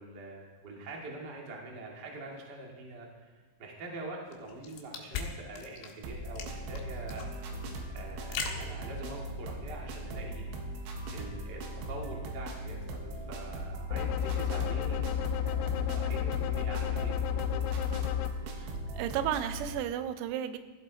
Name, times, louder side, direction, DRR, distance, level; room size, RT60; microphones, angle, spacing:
voice 1, 0.0-7.3 7.9-10.4 11.1-17.7, right 2 dB, 45° right, -1 dB, 1.3 m, -44 dB
sound 1, 4.3-9.5, left 6 dB, 70° left, 3.5 m, -40 dB
sound 2, 6.0-19.8, right 1 dB, 70° right, 3.6 m, -39 dB
sound 3, 13.9-18.3, left 10 dB, 90° left, 3.5 m, -31 dB
voice 2, 18.6-20.6, right 10 dB, 85° right, 10 dB, 3.5 m, -33 dB
15.5 x 15.0 x 4.1 m, 1.3 s
omnidirectional pair, 6.0 m